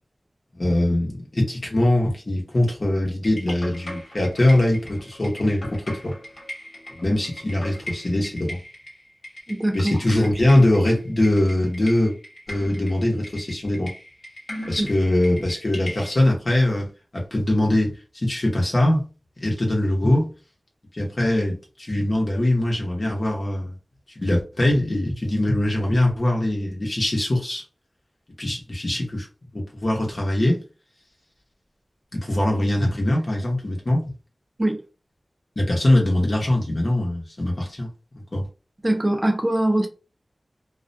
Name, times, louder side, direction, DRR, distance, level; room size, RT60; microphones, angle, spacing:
voice 1, 0.5-6.1 7.0-8.6 9.7-12.1 12.5-13.9 14.7-17.9 18.2-19.0 19.4-20.3 21.0-23.7 24.2-27.6 28.4-29.3 29.5-30.6 32.1-34.1 35.6-37.9 38.3-38.4, left 1 dB, 55° left, 0.9 m, -22 dB
sound 1, 3.2-16.2, equal, 85° left, 1.1 m, -39 dB
voice 2, 9.5-9.9 14.8-14.9 34.6-34.8 38.8-39.9, right 1 dB, 30° right, 0.6 m, -22 dB
2.3 x 2.1 x 2.5 m
wide cardioid pair, 45°, 0 cm